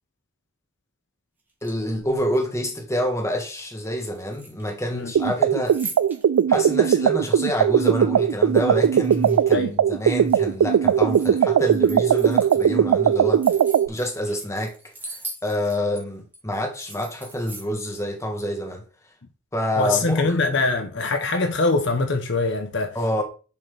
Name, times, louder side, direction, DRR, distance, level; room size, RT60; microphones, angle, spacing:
sound 1, 1.5-2.2 4.1-4.9 5.2-6.4 6.9-7.0 8.4-9.7 10.0-11.3 11.6-12.7 13.1-16.0 16.3-16.4 16.7-17.7, right 3 dB, 10° right, 1.7 m, -40 dB
voice 1, 1.6-5.8 6.5-13.5 13.9-18.8 19.5-20.3 22.9-23.2, equal, 15° left, 1.3 m, -27 dB
sound 2, 5.2-13.9, right 8 dB, 80° right, 0.3 m, -19 dB
voice 2, 19.8-23.0, left 3 dB, 55° left, 0.9 m, -23 dB
7.2 x 4.3 x 5.1 m
head